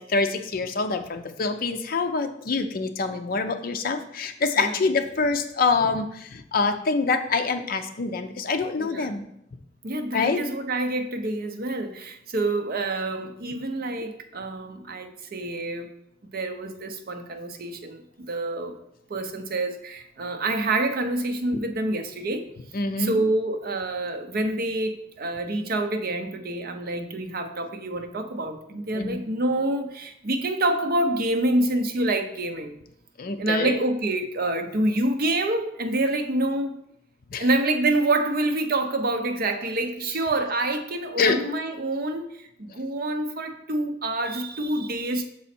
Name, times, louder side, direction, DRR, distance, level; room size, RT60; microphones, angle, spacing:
voice 1, 0.0-9.3 10.1-10.4 22.7-23.2 28.9-29.2 33.2-33.8 37.3-37.5 41.2-41.4, left 4 dB, 50° left, 7 dB, 0.5 m, -25 dB
voice 2, 8.8-9.1 9.8-15.9 16.3-18.8 19.1-22.5 23.0-32.7 33.4-36.8 37.4-45.2, right 2 dB, 50° right, 6 dB, 0.6 m, -27 dB
6.2 x 4.1 x 4.3 m, 0.76 s
head